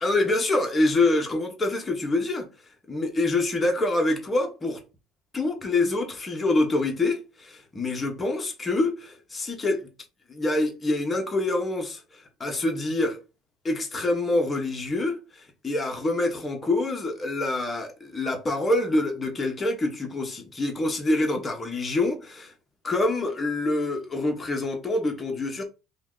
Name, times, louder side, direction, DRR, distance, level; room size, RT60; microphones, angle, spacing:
voice 1, 0.0-2.5 2.9-4.8 5.3-9.9 10.3-13.2 13.6-22.5 22.8-25.6, left 2 dB, 20° left, 0.9 m, -26 dB
2.7 x 2.3 x 3.6 m
cardioid pair, 120°, 0 cm